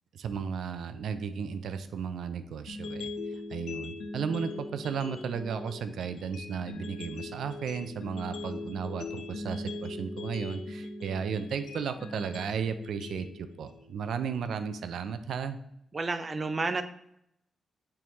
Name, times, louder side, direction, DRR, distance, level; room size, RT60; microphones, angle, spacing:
voice 1, 0.1-15.6, right 6 dB, 80° right, 10 dB, 0.5 m, -34 dB
sound 1, 2.7-14.7, left 2 dB, 80° left, 0.8 m, -41 dB
voice 2, 15.9-16.8, right 3 dB, 25° right, 8 dB, 0.4 m, -30 dB
8.6 x 3.6 x 3.0 m, 0.75 s
wide cardioid pair, 155°, 0 cm